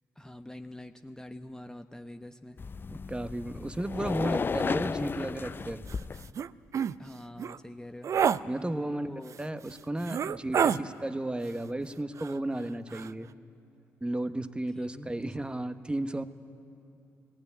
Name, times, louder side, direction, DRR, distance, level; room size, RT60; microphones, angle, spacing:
voice 1, 0.2-2.6 7.0-8.1 8.5-9.4 10.1-10.3 14.7-15.6, left 1 dB, 10° left, 7 dB, 0.9 m, -45 dB
sound 1, 2.6-6.3, left 5 dB, 35° left, 0.4 m, -34 dB
voice 2, 2.9-5.9 8.5-9.1 9.4-13.3 14.0-16.2, right 1 dB, 15° right, 11 dB, 1.1 m, -34 dB
sound 2, 5.9-6.0 6.3-6.5 6.7-6.9 7.4-7.6 8.0-8.4 9.3-9.4 10.0-10.8 12.2-12.6 12.9-13.1, right 7 dB, 55° right, 0.5 m, -28 dB
18.5 x 15.5 x 9.7 m, 2.9 s
hypercardioid pair, 50°, 6 cm